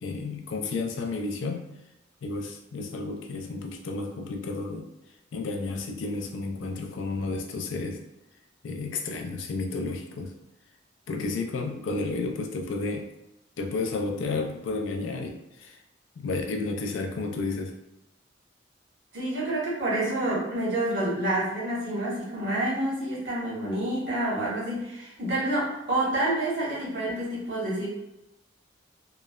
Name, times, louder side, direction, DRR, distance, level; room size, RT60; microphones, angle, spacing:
voice 1, 0.0-1.7 2.2-4.9 5.3-8.0 8.6-10.3 11.1-13.1 13.6-15.8 16.2-17.7, left 3 dB, 85° left, 3 dB, 0.4 m, -32 dB
voice 2, 19.1-27.9, right 1 dB, 65° right, -6 dB, 1.1 m, -28 dB
3.0 x 2.0 x 2.3 m, 0.88 s
head